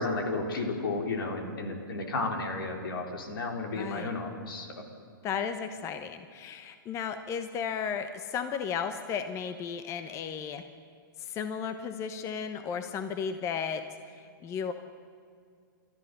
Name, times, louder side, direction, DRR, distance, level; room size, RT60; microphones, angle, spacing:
voice 1, 0.0-4.8, left 3 dB, 80° left, 3 dB, 3.8 m, -33 dB
voice 2, 3.7-4.1 5.2-10.6 11.2-13.8 14.1-14.7, left 7 dB, 25° left, 9 dB, 1.0 m, -34 dB
29.0 x 13.5 x 6.8 m, 2.3 s
hypercardioid pair, 140°, 12 cm